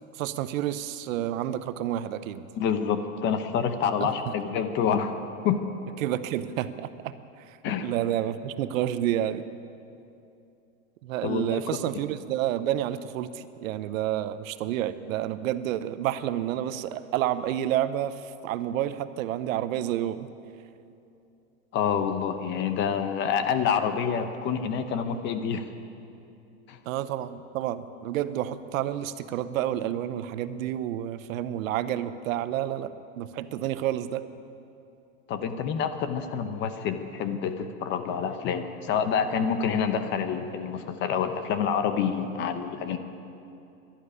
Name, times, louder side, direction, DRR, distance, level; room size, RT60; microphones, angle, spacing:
voice 1, 0.1-2.4 4.0-4.3 6.0-9.5 11.0-20.3 26.9-34.3, right 12 dB, 75° right, 13 dB, 0.8 m, -30 dB
voice 2, 2.5-5.2 5.4-5.6 7.6-7.9 11.2-11.6 21.7-25.7 26.7-26.8 35.3-43.0, left 7 dB, 30° left, 9 dB, 0.7 m, -27 dB
12.0 x 11.5 x 9.8 m, 2.7 s
supercardioid pair, 155°, 41 cm